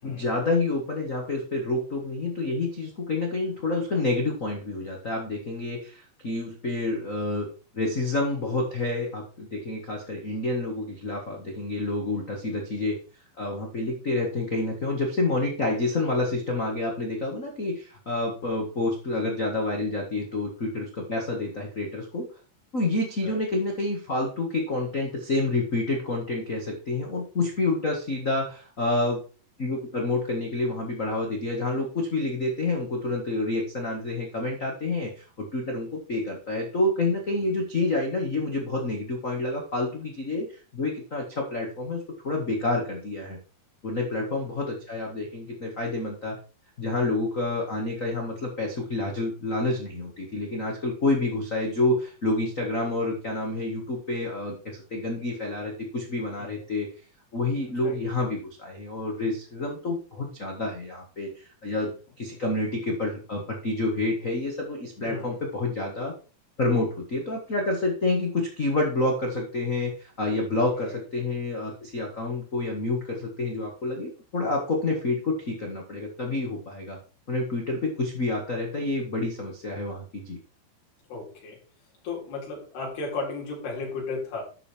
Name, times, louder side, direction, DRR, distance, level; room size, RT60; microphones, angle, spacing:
voice 1, 0.0-7.5 7.7-13.0 13.4-22.3 22.7-29.2 29.6-40.5 40.7-43.4 43.8-46.4 46.8-56.9 57.3-66.1 66.6-69.9 70.2-77.0 77.3-80.4, left 2 dB, 50° left, 0 dB, 0.9 m, -28 dB
voice 2, 44.0-44.4 56.4-56.7 57.8-58.0 65.1-65.4 70.6-71.0 81.1-81.6 82.0-84.4, left 3 dB, 80° left, -3 dB, 5.8 m, -35 dB
12.0 x 5.4 x 4.5 m, 0.37 s
omnidirectional pair, 4.6 m